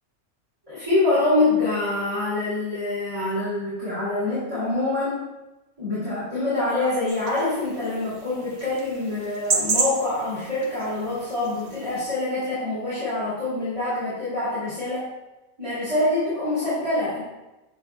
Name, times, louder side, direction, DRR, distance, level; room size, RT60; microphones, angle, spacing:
voice 1, 0.7-5.3 5.8-15.1 15.6-17.2, left 2 dB, 25° right, -12 dB, 2.3 m, -25 dB
sound 1, 7.1-12.0, right 4 dB, 60° right, 1.0 m, -31 dB
7.2 x 6.5 x 2.2 m, 1.0 s
omnidirectional pair, 1.4 m